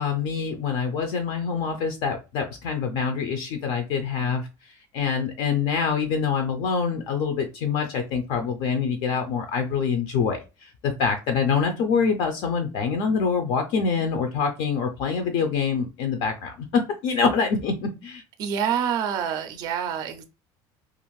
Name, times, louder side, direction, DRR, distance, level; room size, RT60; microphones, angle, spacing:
voice 1, 0.0-18.2, left 5 dB, 55° left, 0.4 m, -25 dB
voice 2, 18.4-20.2, right 8 dB, 40° right, 0.4 m, -27 dB
2.5 x 2.4 x 3.1 m
cardioid pair, 170°, 10 cm